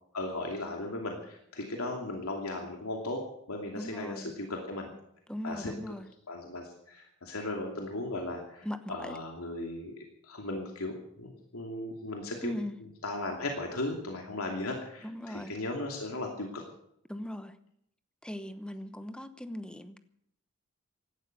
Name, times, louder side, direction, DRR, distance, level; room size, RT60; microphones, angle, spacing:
voice 1, 0.1-3.2 3.5-4.9 5.4-5.7 6.3-12.5 13.0-16.6, left 2 dB, 90° left, 1 dB, 2.8 m, -37 dB
voice 2, 3.8-4.3 5.3-6.1 8.6-9.2 12.4-12.8 15.0-15.5 17.1-17.5 18.2-20.0, left 1 dB, 5° left, 11 dB, 0.9 m, -39 dB
17.0 x 12.5 x 6.7 m, 0.71 s
head